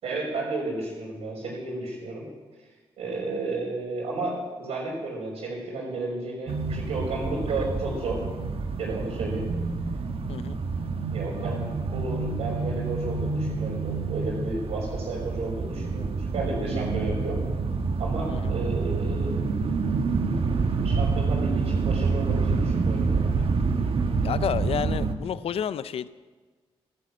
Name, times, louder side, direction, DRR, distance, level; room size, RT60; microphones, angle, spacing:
voice 1, 0.0-2.3 3.0-8.2 8.8-9.4 11.1-17.4 18.0-19.5 20.8-23.3, right 2 dB, 85° right, -8 dB, 4.7 m, -32 dB
sound 1, 6.5-25.1, right 4 dB, 60° right, 1.3 m, -27 dB
voice 2, 24.2-26.1, left 9 dB, 70° left, 16 dB, 0.5 m, -30 dB
13.5 x 12.0 x 7.5 m, 1.3 s
cardioid pair, 55°, 11 cm